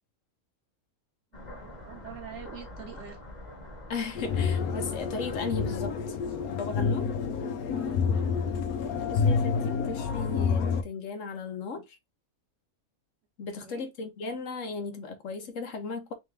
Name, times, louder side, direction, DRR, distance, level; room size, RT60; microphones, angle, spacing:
sound 1, 1.3-6.3, left 1 dB, 30° left, 1.3 m, -46 dB
voice 1, 1.3-3.2 7.7-8.0 13.5-13.8, right 7 dB, 55° right, 1.2 m, -45 dB
voice 2, 3.9-6.2 6.5-7.1 9.0-12.0 13.4-16.1, left 4 dB, 65° left, 1.1 m, -36 dB
sound 2, 4.1-10.8, left 5 dB, 85° left, 1.2 m, -28 dB
3.4 x 3.3 x 3.2 m
omnidirectional pair, 1.5 m